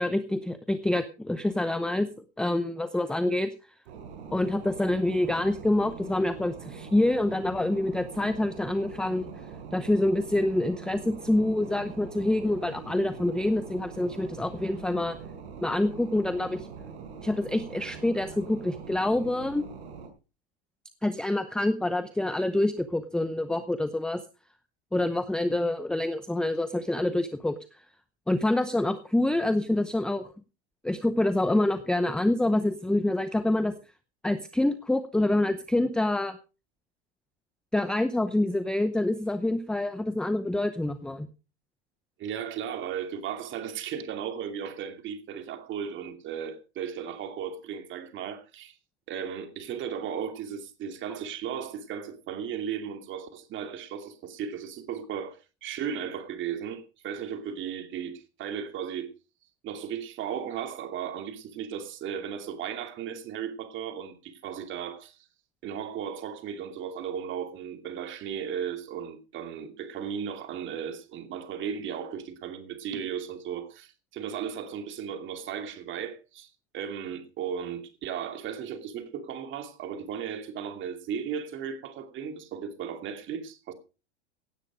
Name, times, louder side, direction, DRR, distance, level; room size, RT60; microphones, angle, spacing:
voice 1, 0.0-2.1 2.4-3.5 4.3-9.3 9.7-15.2 15.6-16.7 17.2-19.6 21.0-24.2 24.9-27.6 28.3-30.3 30.8-33.7 34.2-36.4 37.7-41.3, left 1 dB, ahead, 0.7 m, -26 dB
sound 1, 3.9-20.1, right 6 dB, 75° right, 5.1 m, -43 dB
voice 2, 42.2-48.8 49.1-59.1 59.6-65.2 65.6-83.7, right 8 dB, 35° right, 2.7 m, -36 dB
17.0 x 9.0 x 5.0 m
supercardioid pair, 130°, 33 cm